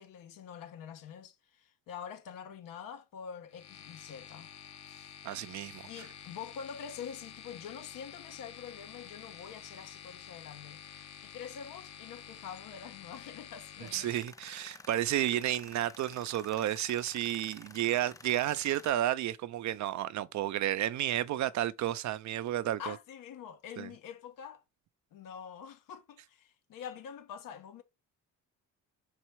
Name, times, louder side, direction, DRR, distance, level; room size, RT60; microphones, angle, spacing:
voice 1, 0.0-4.5 4.8-5.1 5.9-14.1 14.4-14.6 22.8-24.6 25.1-27.8, left 8 dB, 85° left, 1.3 m, -46 dB
sound 1, 3.5-14.2, left 9 dB, 55° left, 1.0 m, -50 dB
voice 2, 5.2-6.1 13.9-23.0 23.8-23.9, right 12 dB, 60° right, 0.6 m, -32 dB
Tools, 13.8-18.9, left 3 dB, 10° left, 0.3 m, -52 dB
5.5 x 4.2 x 4.5 m
cardioid pair, 135°, 32 cm